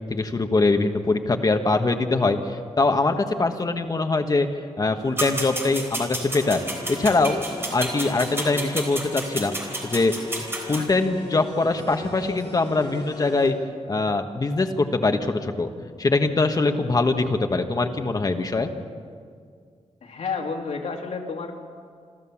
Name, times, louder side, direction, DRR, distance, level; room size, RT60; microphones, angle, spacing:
voice 1, 0.1-4.5 4.8-6.6 6.9-7.4 7.7-13.6 13.9-15.7 16.0-18.7, left 3 dB, 35° left, 6 dB, 1.3 m, -23 dB
sound 1, 5.2-10.8, right 1 dB, 20° right, 3.8 m, -31 dB
sound 2, 6.4-13.5, left 3 dB, 55° left, 3.2 m, -40 dB
voice 2, 20.0-21.6, left 4 dB, 80° left, 1 dB, 2.3 m, -30 dB
27.5 x 13.0 x 7.2 m, 2.1 s
wide cardioid pair, 145°, 12 cm